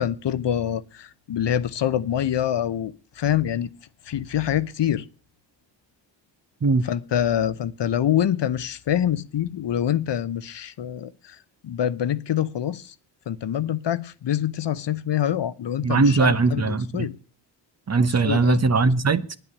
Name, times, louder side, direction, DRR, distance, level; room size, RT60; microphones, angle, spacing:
voice 1, 0.0-3.7 4.1-5.0 6.9-11.4 11.6-12.9 13.3-17.1 18.2-18.6, left 10 dB, 65° left, 0.8 m, -25 dB
voice 2, 15.8-17.1 17.9-19.4, right 3 dB, 35° right, 0.9 m, -20 dB
9.6 x 9.1 x 8.5 m
cardioid pair, 60°, 45 cm